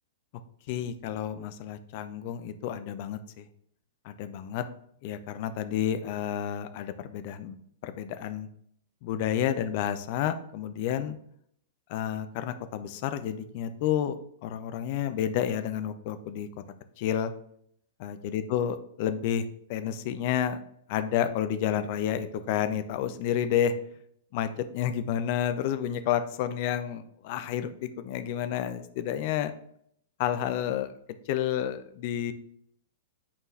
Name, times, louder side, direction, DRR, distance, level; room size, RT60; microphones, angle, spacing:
voice 1, 0.7-3.5 4.0-4.6 5.0-7.6 7.8-8.5 9.0-11.2 11.9-14.1 14.4-16.5 17.0-17.3 18.0-20.6 20.9-23.7 24.3-29.5 30.2-30.9 31.3-32.3, left 10 dB, 45° left, 10 dB, 0.6 m, -30 dB
8.5 x 4.5 x 3.3 m, 0.68 s
figure-of-eight pair, 100°, 0 cm